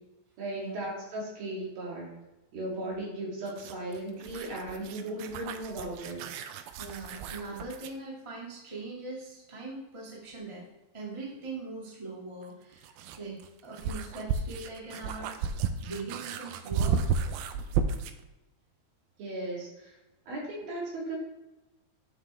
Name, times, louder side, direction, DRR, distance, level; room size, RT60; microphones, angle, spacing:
voice 1, 0.4-2.1 2.5-6.2 19.2-19.9 20.3-21.2, right 1 dB, 65° right, -5 dB, 4.5 m, -36 dB
sound 1, 3.5-8.0 10.3-10.4 12.4-18.2, right 6 dB, 80° right, 2.2 m, -33 dB
voice 2, 6.6-10.6 10.9-15.4 15.8-17.0, right 3 dB, 25° right, -4 dB, 0.6 m, -41 dB
9.2 x 7.2 x 3.5 m, 1.0 s
omnidirectional pair, 4.8 m